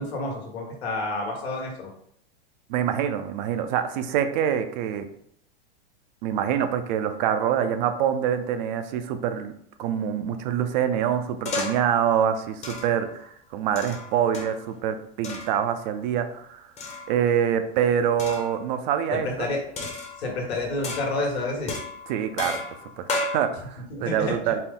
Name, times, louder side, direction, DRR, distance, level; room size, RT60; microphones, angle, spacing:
voice 1, 0.0-1.9 19.1-19.9 20.2-21.7 23.9-24.5, left 2 dB, 90° left, 0 dB, 1.3 m, -29 dB
voice 2, 2.7-5.1 6.2-9.5 9.8-16.6 17.1-19.5 22.1-22.6 23.0-24.6, right 9 dB, 50° right, 9 dB, 0.4 m, -25 dB
sound 1, 11.5-11.9 12.6-13.1 13.8-14.7 15.2-15.6 16.8-17.3 18.2-18.6 19.8-20.4 20.8-21.3 21.7-23.4, left 2 dB, 20° left, 0.8 m, -33 dB
4.3 x 2.0 x 3.6 m, 0.68 s
supercardioid pair, 135°, 31 cm